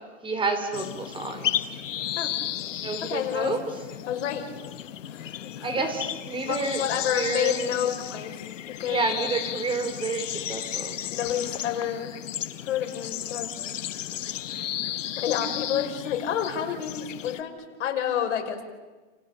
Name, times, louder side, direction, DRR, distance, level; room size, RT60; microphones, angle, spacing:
voice 1, 0.0-1.7 2.8-3.6 5.6-6.8 7.1-7.7 8.9-11.0, right 3 dB, 15° right, 7 dB, 3.9 m, -29 dB
sound 1, 0.7-17.4, left 11 dB, 80° left, 1.6 m, -34 dB
voice 2, 3.1-3.5 4.1-4.5 5.1-5.9 6.5-8.3 8.7-9.1 11.1-12.2 12.6-14.0 15.2-18.6, left 9 dB, 65° left, 3 dB, 5.9 m, -29 dB
30.0 x 29.0 x 6.9 m, 1.3 s
hypercardioid pair, 150°, 37 cm